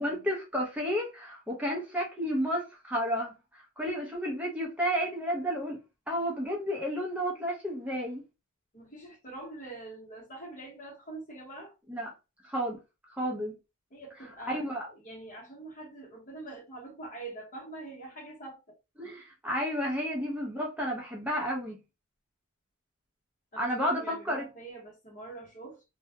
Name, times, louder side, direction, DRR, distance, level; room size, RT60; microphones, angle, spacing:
voice 1, 0.0-5.8 6.1-8.2 11.9-12.1 12.4-12.8 13.1-13.6 14.5-14.9 19.0-21.8 23.6-24.4, equal, 5° right, 0.5 m, -31 dB
voice 2, 8.7-11.8 13.9-18.8 23.5-25.8, right 2 dB, 35° left, 0.8 m, -45 dB
2.2 x 2.0 x 2.7 m
head